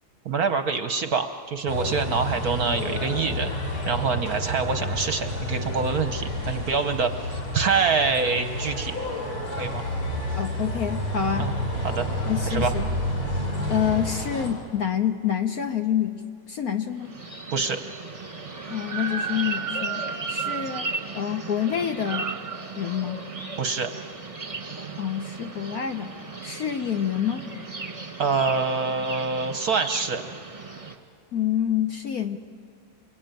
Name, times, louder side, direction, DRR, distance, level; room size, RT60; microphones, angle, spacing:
voice 1, 0.2-3.5 3.9-8.9 9.5-9.8 11.4-11.5 11.8-12.1 12.5-12.7 17.5-17.8 23.6-23.9 28.2-30.3, right 5 dB, 55° right, 8 dB, 1.1 m, -25 dB
sound 1, 1.7-14.5, left 1 dB, 85° left, 4.8 m, -30 dB
voice 2, 10.3-11.5 12.3-12.9 13.7-17.1 18.7-20.9 21.1-22.3 22.8-23.2 25.0-26.1 26.4-27.5 31.3-32.4, left 9 dB, 55° left, 7 dB, 1.1 m, -27 dB
sound 2, 17.0-31.0, right 4 dB, 20° right, 1.3 m, -35 dB
28.5 x 21.0 x 9.1 m, 2.3 s
omnidirectional pair, 2.3 m